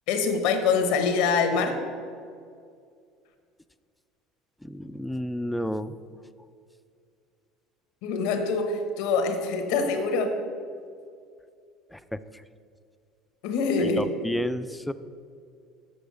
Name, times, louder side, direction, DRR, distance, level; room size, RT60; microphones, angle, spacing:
voice 1, 0.1-1.8 8.0-10.3 13.4-14.1, left 4 dB, 75° left, 7 dB, 0.9 m, -25 dB
voice 2, 4.6-5.9 11.9-12.2 13.8-14.9, equal, 5° left, 13 dB, 0.3 m, -31 dB
6.8 x 6.3 x 5.0 m, 2.3 s
supercardioid pair, 95°, 0 cm